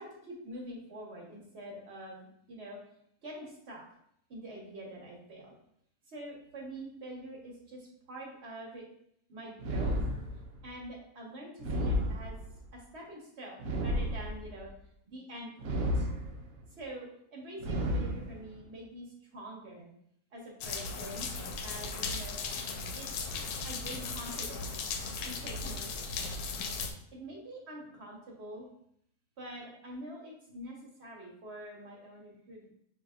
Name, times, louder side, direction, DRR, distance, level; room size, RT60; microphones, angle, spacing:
voice 1, 0.0-2.8 3.2-3.8 4.3-5.5 6.1-8.8 9.3-10.0 10.6-12.4 12.7-14.7 15.1-16.1 16.8-19.9 20.3-21.3 21.6-22.4 22.9-23.1 23.6-24.7 25.2-25.9 27.1-28.7 29.4-32.7, right 1 dB, 50° right, -2 dB, 1.3 m, -45 dB
sound 1, 9.6-10.7 11.6-12.7 13.6-14.7 15.6-16.6 17.6-18.6, equal, 70° right, 0.9 m, -32 dB
sound 2, 20.6-26.9, left 4 dB, 85° left, 1.1 m, -37 dB
6.4 x 2.8 x 2.4 m, 0.70 s
omnidirectional pair, 1.5 m